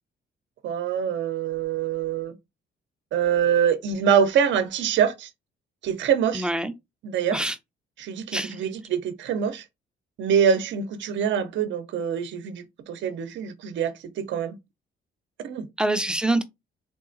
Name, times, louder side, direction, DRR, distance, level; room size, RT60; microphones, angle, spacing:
voice 1, 0.6-2.3 3.1-5.3 5.8-6.5 7.0-7.4 8.0-9.6 10.2-14.6 15.4-15.7, right 8 dB, 70° right, 0.6 m, -24 dB
voice 2, 6.3-6.7 7.3-7.6 8.3-8.6 15.8-16.4, right 1 dB, 5° right, 0.4 m, -25 dB
3.7 x 2.3 x 2.5 m
cardioid pair, 90°, 20 cm